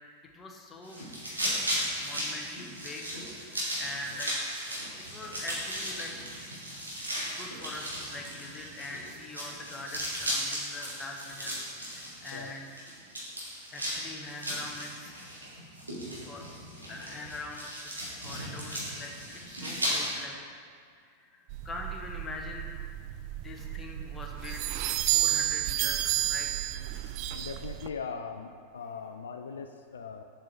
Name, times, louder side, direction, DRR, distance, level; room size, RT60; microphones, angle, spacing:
voice 1, 0.3-1.1 1.7-4.4 5.0-6.1 7.2-12.7 13.7-15.1 16.2-16.4 16.9-17.7 18.0-19.1 19.5-20.4 21.2-22.7 23.0-24.6 25.0-26.7, left 2 dB, 20° left, 1 dB, 1.0 m, -43 dB
sound 1, 0.8-20.2, equal, 80° right, 2.1 m, -36 dB
sound 2, 21.5-27.9, right 13 dB, 45° right, 0.3 m, -31 dB
voice 2, 27.3-30.2, left 5 dB, 70° left, 6 dB, 0.3 m, -40 dB
7.4 x 5.6 x 4.6 m, 2.1 s
figure-of-eight pair, 90°, 0 cm